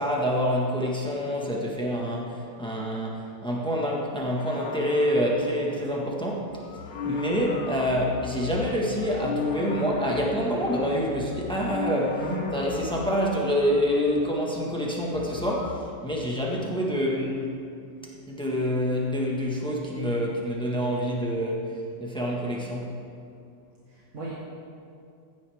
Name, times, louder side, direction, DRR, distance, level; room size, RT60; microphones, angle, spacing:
voice 1, 0.0-17.6 18.3-22.9, equal, 5° left, -3 dB, 1.3 m, -27 dB
sound 1, 4.3-6.2 6.8-8.7 9.4-11.2 11.9-13.8, left 4 dB, 40° left, 0.7 m, -42 dB
sound 2, 6.5-14.4 14.7-14.8 15.0-15.8, left 5 dB, 85° left, 1.3 m, -36 dB
voice 2, 12.2-12.5 23.9-24.3, equal, 45° right, -5 dB, 1.7 m, -34 dB
14.5 x 10.0 x 3.6 m, 2.4 s
omnidirectional pair, 2.0 m